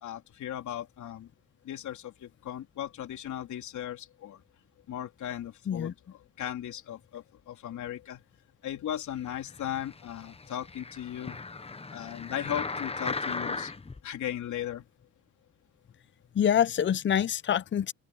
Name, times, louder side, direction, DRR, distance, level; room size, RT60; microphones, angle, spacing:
voice 1, 0.0-1.3 1.6-4.4 4.9-5.9 6.4-8.2 8.6-11.4 11.9-13.8 14.0-14.9, left 11 dB, 75° left, 3.8 m, -37 dB
sound 1, 9.4-14.0 14.6-14.7, left 3 dB, 20° left, 1.2 m, -37 dB
voice 2, 16.3-17.9, left 9 dB, 40° left, 0.7 m, -26 dB
open air
cardioid pair, 90°, 30 cm